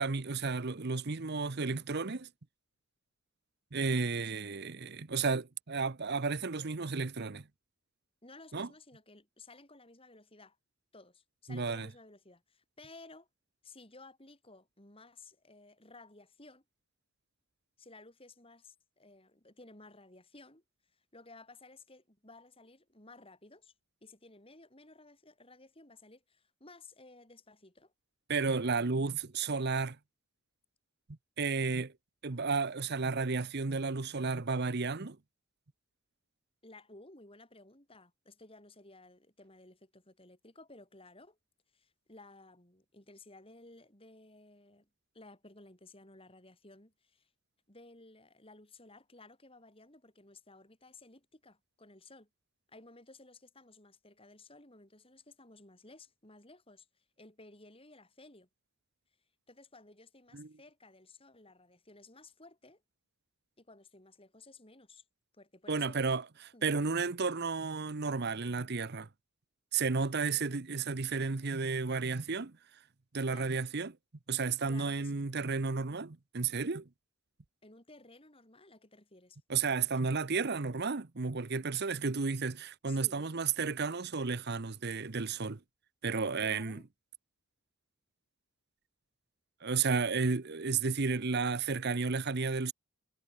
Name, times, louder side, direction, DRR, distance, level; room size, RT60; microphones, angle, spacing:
voice 1, 0.0-2.3 3.7-7.4 8.5-8.7 11.5-11.9 28.3-30.0 31.4-31.9 32.2-35.2 60.3-60.5 65.7-69.1 69.7-72.5 73.1-73.9 74.3-76.8 79.5-85.6 86.0-86.8 89.6-92.7, right 4 dB, 50° right, 0.9 m, -32 dB
voice 2, 8.2-10.6 10.9-13.3 13.6-16.6 17.8-23.7 24.0-27.9 36.6-41.4 41.7-44.9 45.1-47.3 47.7-52.3 52.7-58.5 59.5-62.8 63.6-65.0 65.3-66.0 66.5-66.7 73.3-73.7 74.7-75.2 77.6-79.4 79.9-80.0 82.9-83.4 86.4-86.9, left 2 dB, 25° left, 5.3 m, -56 dB
head